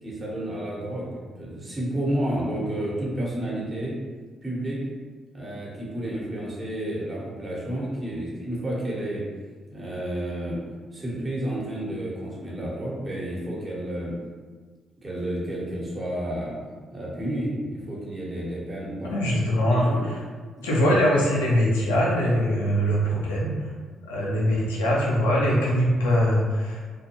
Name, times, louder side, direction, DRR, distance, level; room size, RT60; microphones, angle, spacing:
voice 1, 0.0-4.0 4.4-4.8 5.3-9.2 9.7-10.6 10.9-14.2 15.0-16.5 16.9-19.1 19.7-20.0 20.6-21.0, right 1 dB, 30° right, -6 dB, 1.1 m, -31 dB
voice 2, 19.0-20.2 20.6-23.7 24.1-26.8, equal, 90° left, -5 dB, 0.5 m, -22 dB
2.5 x 2.3 x 2.8 m, 1.5 s
hypercardioid pair, 45°, 0 cm